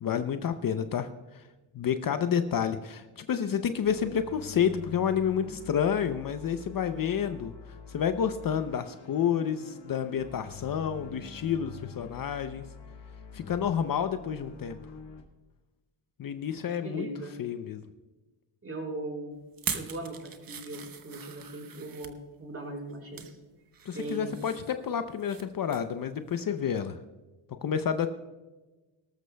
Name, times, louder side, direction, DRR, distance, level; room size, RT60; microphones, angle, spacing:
voice 1, 0.0-1.4 1.7-7.5 7.9-12.6 13.3-14.8 16.2-17.1 17.4-17.8 23.8-27.0 27.6-28.1, left 8 dB, 45° left, 9 dB, 0.7 m, -29 dB
sound 1, 3.8-15.2, left 6 dB, 60° left, 1.9 m, -47 dB
voice 2, 16.8-17.4 18.6-19.4 19.7-23.4 23.9-24.4, right 2 dB, 30° right, 1 dB, 4.0 m, -39 dB
sound 2, 19.5-22.2 22.8-23.3 23.7-25.4 25.7-25.9 26.3-26.4, right 7 dB, 45° right, 1.1 m, -40 dB
19.0 x 13.0 x 2.3 m, 1.2 s
cardioid pair, 100°, 48 cm